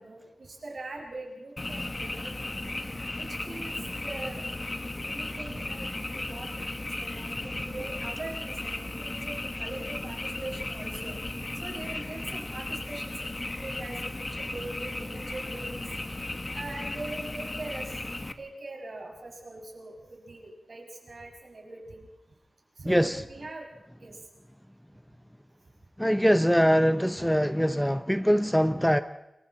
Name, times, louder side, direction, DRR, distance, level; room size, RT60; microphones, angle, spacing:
voice 1, 0.0-2.3 3.2-3.7 4.0-11.2 11.6-13.1 13.6-15.8 16.3-17.8 18.4-22.1 22.8-23.7 24.0-24.2, right 2 dB, 55° right, 6.3 m, -42 dB
Frog, 1.6-18.3, left 2 dB, 30° left, 1.4 m, -35 dB
voice 2, 22.9-23.2 26.0-29.0, equal, ahead, 0.6 m, -23 dB
29.5 x 23.0 x 4.3 m
wide cardioid pair, 105°, 0 cm